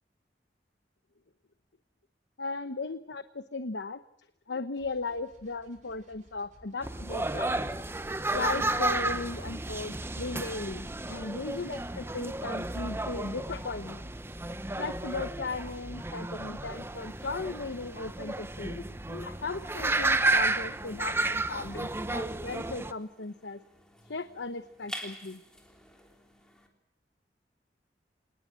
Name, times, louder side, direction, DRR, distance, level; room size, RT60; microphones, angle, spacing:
voice 1, 2.4-4.0 4.5-7.6 8.3-14.1 14.8-23.6 24.0-25.4, left 3 dB, 85° left, 11 dB, 0.9 m, -37 dB
sound 1, 4.7-12.1, right 1 dB, 45° right, 6.0 m, -60 dB
sound 2, 6.8-22.9, right 2 dB, 15° right, 0.9 m, -32 dB
sound 3, 18.9-26.7, equal, 5° left, 3.6 m, -50 dB
27.0 x 19.5 x 7.6 m, 0.79 s
head